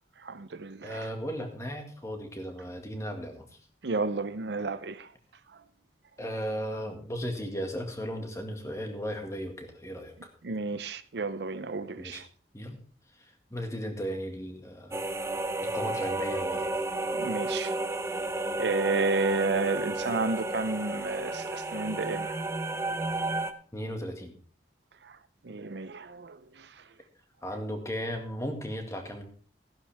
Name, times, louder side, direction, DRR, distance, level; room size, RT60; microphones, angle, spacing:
voice 1, 0.2-1.0 3.8-5.1 10.4-12.2 17.1-17.8 18.5-22.4 25.4-26.4, right 3 dB, 70° right, 0.7 m, -31 dB
voice 2, 0.8-3.5 6.2-10.1 12.0-12.2 12.5-12.8 13.2-15.0 15.6-16.7 23.7-24.3 27.4-29.2, equal, 15° left, 2.0 m, -36 dB
sound 1, 14.9-23.5, right 2 dB, 15° right, 0.7 m, -32 dB
14.5 x 11.0 x 3.5 m
head